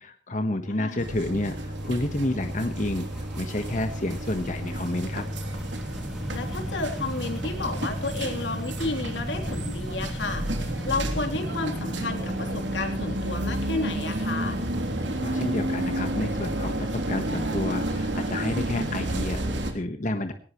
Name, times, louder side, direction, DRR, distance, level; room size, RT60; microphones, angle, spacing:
voice 1, 0.0-5.2 15.2-20.3, left 1 dB, 40° left, 7 dB, 1.3 m, -30 dB
voice 2, 0.7-1.1 6.3-14.6, left 3 dB, 85° left, 3 dB, 3.4 m, -32 dB
sound 1, 0.9-19.7, equal, ahead, 2.5 m, -39 dB
sound 2, 1.0-19.7, right 1 dB, 85° right, 3.2 m, -31 dB
20.0 x 18.5 x 3.1 m, 0.41 s
head